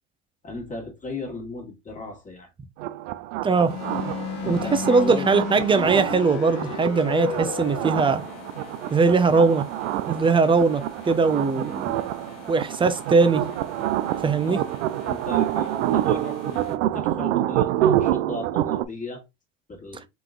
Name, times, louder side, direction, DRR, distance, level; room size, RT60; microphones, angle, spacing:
voice 1, 0.4-2.5 4.4-5.3 14.1-14.7 15.0-19.2 19.7-20.1, left 2 dB, 20° left, 1.8 m, -36 dB
sound 1, 2.8-18.8, right 13 dB, 85° right, 0.5 m, -27 dB
voice 2, 3.4-3.8 4.5-8.2 8.9-9.6 10.0-12.0 12.5-13.4 14.2-14.6, right 4 dB, 15° right, 0.6 m, -20 dB
sound 2, 3.6-16.7, left 8 dB, 45° left, 1.2 m, -37 dB
3.9 x 2.8 x 3.7 m
supercardioid pair, 110°, 36 cm